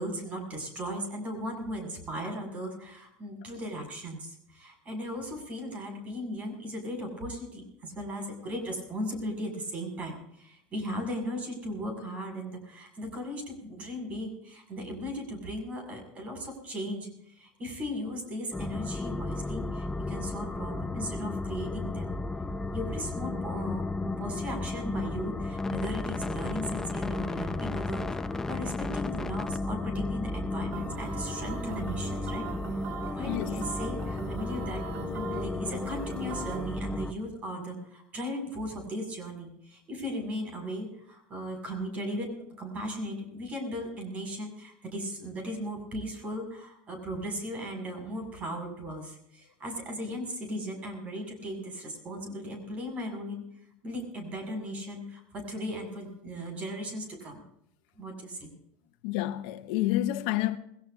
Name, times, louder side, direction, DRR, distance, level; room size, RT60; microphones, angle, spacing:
voice 1, 0.0-22.1 22.7-32.4 33.1-34.8 35.1-53.4 53.8-57.4 58.0-58.5, equal, 30° right, 7.1 m, -37 dB
sound 1, 18.5-37.1, left 2 dB, 10° left, 0.7 m, -34 dB
sound 2, 30.7-36.8, right 13 dB, 55° right, 0.5 m, -41 dB
voice 2, 33.3-33.7 59.0-60.6, left 15 dB, 70° left, 1.0 m, -29 dB
22.0 x 17.5 x 2.8 m
supercardioid pair, 140°, 5 cm